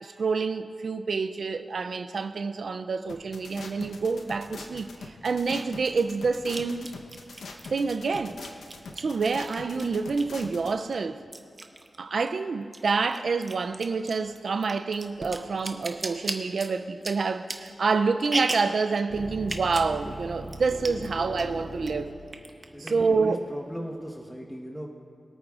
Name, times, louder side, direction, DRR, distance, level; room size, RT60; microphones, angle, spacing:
voice 1, 0.0-6.9 7.7-8.4 9.0-11.2 12.0-22.1 22.9-23.4, right 4 dB, 70° right, 0.4 m, -27 dB
sound 1, 3.1-10.7, left 3 dB, 85° left, 0.9 m, -42 dB
sound 2, 4.7-4.8 6.5-10.4 10.8-12.4 12.6-18.8 19.4-19.9 20.2-20.3 20.5-21.1 21.4-21.9 22.3-23.2, right 2 dB, 35° right, 0.9 m, -37 dB
sound 3, 19.1-24.2, right 1 dB, 40° left, 2.9 m, -40 dB
voice 2, 22.7-24.9, equal, 5° left, 1.2 m, -38 dB
23.0 x 8.9 x 2.4 m
cardioid pair, 55°, 0 cm